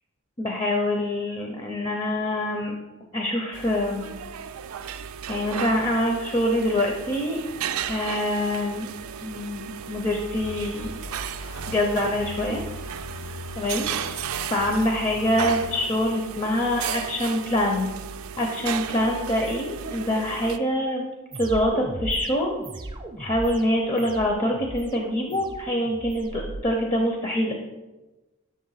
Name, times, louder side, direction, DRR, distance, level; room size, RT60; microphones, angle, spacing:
voice 1, 0.4-2.7 3.1-4.1 5.3-7.4 7.9-8.9 9.2-11.0 11.7-12.6 13.6-14.2 14.5-17.9 18.4-21.0 21.4-22.6 23.2-27.5, left 1 dB, 30° left, 2 dB, 0.6 m, -25 dB
sound 1, 3.5-20.6, right 8 dB, 85° right, 0.4 m, -35 dB
sound 2, 10.4-15.9, left 3 dB, 65° left, 0.6 m, -40 dB
sound 3, 21.3-26.6, right 2 dB, 20° right, 0.5 m, -37 dB
6.6 x 3.7 x 5.6 m, 1.1 s
head